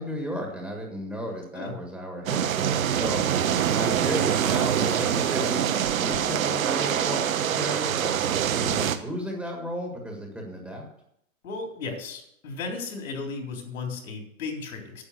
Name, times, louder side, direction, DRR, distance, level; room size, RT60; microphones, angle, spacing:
voice 1, 0.0-3.2 3.7-8.1 8.5-10.8, equal, 5° right, 0 dB, 1.6 m, -34 dB
sound 1, 2.3-9.0, right 9 dB, 70° right, 1.1 m, -25 dB
voice 2, 11.4-15.0, left 4 dB, 70° left, 2 dB, 3.7 m, -35 dB
9.7 x 7.4 x 7.7 m, 0.77 s
hypercardioid pair, 150°, 42 cm